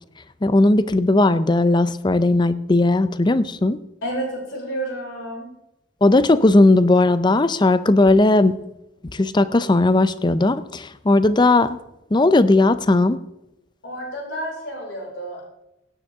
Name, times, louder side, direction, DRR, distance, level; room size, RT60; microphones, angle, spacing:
voice 1, 0.4-3.8 6.0-8.6 9.1-11.8 12.1-13.2, left 2 dB, 25° left, 15 dB, 0.5 m, -17 dB
voice 2, 4.0-5.5 13.8-15.5, right 1 dB, 85° left, -2 dB, 5.6 m, -30 dB
16.5 x 9.9 x 3.6 m, 0.89 s
head